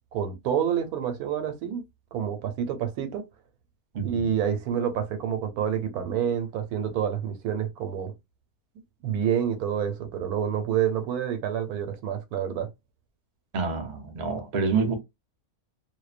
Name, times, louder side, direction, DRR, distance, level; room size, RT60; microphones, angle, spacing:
voice 1, 0.1-1.8 2.1-3.2 4.0-8.1 9.0-12.7, right 8 dB, 90° right, 1.1 m, -28 dB
voice 2, 3.9-4.3 13.5-14.9, right 5 dB, 55° right, 0.5 m, -27 dB
2.6 x 2.1 x 2.4 m
omnidirectional pair, 1.6 m